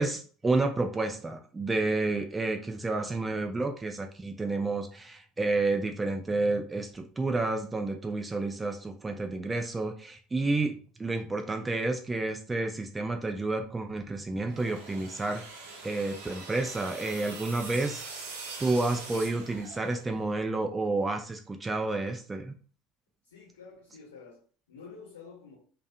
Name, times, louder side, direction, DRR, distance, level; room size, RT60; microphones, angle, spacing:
voice 1, 0.0-15.4 15.8-18.0 18.6-22.6, right 2 dB, 15° right, 4 dB, 0.3 m, -30 dB
sound 1, 14.4-20.2, right 3 dB, 65° right, 0.7 m, -43 dB
voice 2, 23.2-25.6, left 5 dB, 70° left, -4 dB, 0.8 m, -49 dB
2.5 x 2.3 x 2.4 m, 0.42 s
figure-of-eight pair, 65°, 0 cm